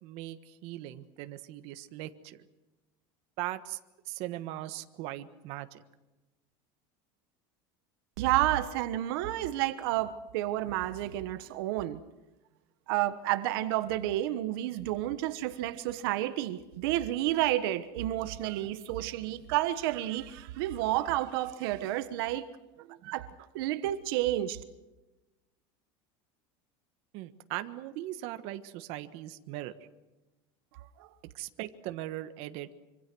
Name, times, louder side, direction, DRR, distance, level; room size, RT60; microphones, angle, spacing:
voice 1, 0.0-2.5 3.4-3.8 4.1-5.8 23.0-23.1 27.1-29.7 31.3-32.7, right 15 dB, 60° right, 1.4 m, -39 dB
voice 2, 8.2-12.0 12.9-22.5 22.8-23.3 23.5-24.6 31.0-31.1, right 14 dB, 80° right, 1.3 m, -30 dB
25.5 x 25.5 x 6.2 m
cardioid pair, 155°, 12 cm